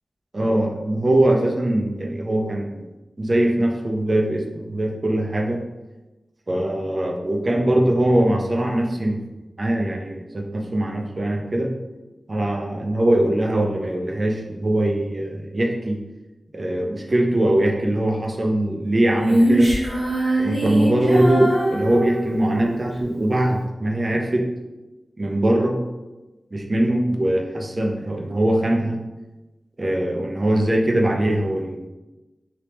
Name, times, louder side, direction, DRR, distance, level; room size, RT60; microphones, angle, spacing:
voice 1, 0.3-2.9 3.2-5.6 6.5-9.2 9.6-11.7 12.3-16.0 16.5-19.7 20.4-24.5 25.2-25.8 26.5-29.0 29.8-31.9, right 1 dB, 45° right, 2 dB, 0.6 m, -21 dB
Female singing, 19.2-22.8, right 1 dB, 90° right, 1.3 m, -22 dB
3.4 x 2.9 x 2.9 m, 1.1 s
cardioid pair, 45°, 0 cm